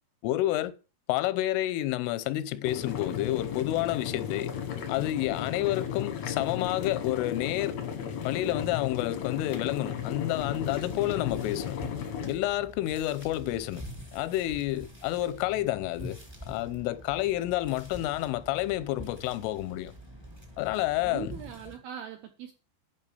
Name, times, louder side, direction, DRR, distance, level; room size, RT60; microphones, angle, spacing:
voice 1, 0.2-0.7 1.1-4.5 4.9-7.8 8.2-11.8 12.3-13.8 14.1-16.2 16.5-19.9 20.6-21.4, left 15 dB, 90° left, 3.3 m, -29 dB
sound 1, 2.6-12.3, left 8 dB, 75° left, 1.6 m, -35 dB
sound 2, 10.4-21.8, equal, 15° right, 0.9 m, -46 dB
voice 2, 21.0-22.5, right 9 dB, 75° right, 2.3 m, -40 dB
11.0 x 5.4 x 6.9 m
omnidirectional pair, 5.6 m